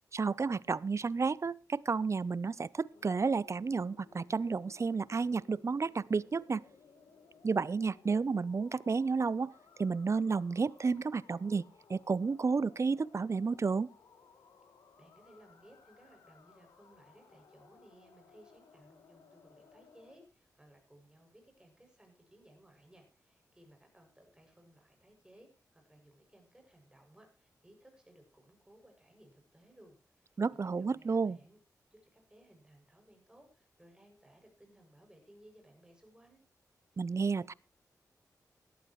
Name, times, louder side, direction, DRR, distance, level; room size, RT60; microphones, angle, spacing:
voice 1, 0.1-6.6 7.4-9.5 9.8-11.6 11.9-13.9 30.4-31.4 37.0-37.5, right 4 dB, 45° right, 22 dB, 0.6 m, -31 dB
sound 1, 2.9-20.2, left 5 dB, 90° left, 2.9 m, -61 dB
voice 2, 14.9-31.6 31.9-36.4 36.9-37.0, right 1 dB, 10° right, 3 dB, 7.3 m, -61 dB
17.5 x 12.0 x 3.2 m, 0.33 s
cardioid pair, 50°, 7 cm